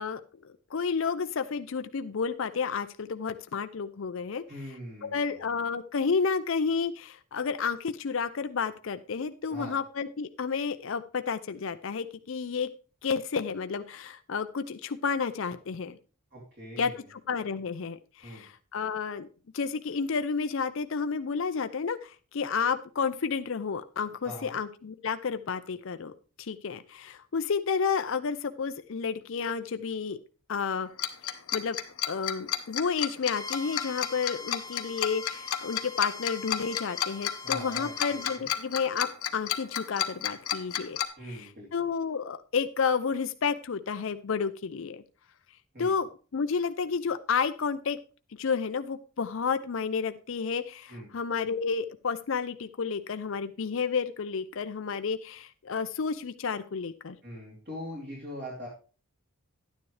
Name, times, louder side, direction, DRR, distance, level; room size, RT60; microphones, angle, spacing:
voice 1, 0.0-4.4 5.0-12.7 13.0-16.0 16.8-19.3 19.5-26.1 26.4-30.2 30.5-30.9 31.5-31.8 32.1-41.0 41.3-45.0 45.8-48.0 48.4-57.2, left 5 dB, 60° left, 10 dB, 0.5 m, -31 dB
voice 2, 4.5-5.6 9.5-9.8 16.3-17.0 18.2-18.5 24.2-24.5 37.4-38.5 41.2-41.7 45.7-46.0 50.9-51.1 57.2-58.7, equal, 45° right, -5 dB, 2.9 m, -42 dB
Tick-tock, 31.0-41.0, left 10 dB, 85° left, 0.9 m, -31 dB
Bowed string instrument, 33.3-38.4, left 3 dB, 15° left, 0.6 m, -43 dB
11.0 x 9.6 x 3.2 m, 0.36 s
head